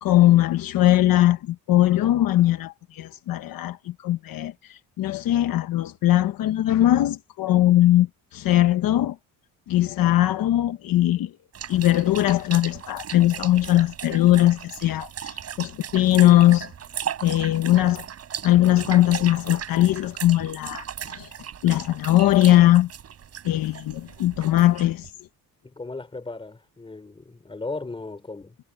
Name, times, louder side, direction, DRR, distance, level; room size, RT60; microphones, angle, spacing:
voice 1, 0.0-9.2 9.7-11.3 11.7-16.7 17.2-18.1 18.4-21.3 21.6-22.9 23.4-25.1, left 14 dB, 65° left, 1.2 m, -20 dB
sound 1, 11.5-25.1, right 8 dB, 40° right, 5.3 m, -37 dB
voice 2, 25.6-28.6, left 3 dB, 15° left, 5.1 m, -36 dB
cardioid pair, 155°, 36 cm